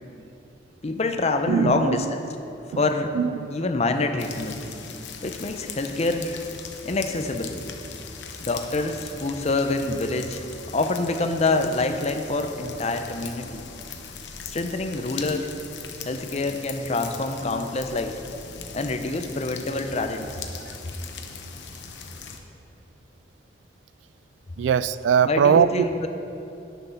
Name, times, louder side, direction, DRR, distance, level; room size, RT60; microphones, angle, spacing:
voice 1, 0.8-2.0 2.8-3.1 3.5-4.6 5.2-6.4 6.8-7.5 8.4-10.4 10.7-13.6 14.4-15.5 16.1-18.2 18.7-20.3 25.2-26.1, left 2 dB, 35° left, 6 dB, 0.6 m, -26 dB
voice 2, 1.5-2.1 2.7-2.8 3.1-3.5 20.7-20.8 24.6-25.9, right 7 dB, 85° right, 16 dB, 0.3 m, -21 dB
sound 1, 4.2-22.4, left 5 dB, 75° left, 0.9 m, -40 dB
9.1 x 7.0 x 5.7 m, 2.9 s
head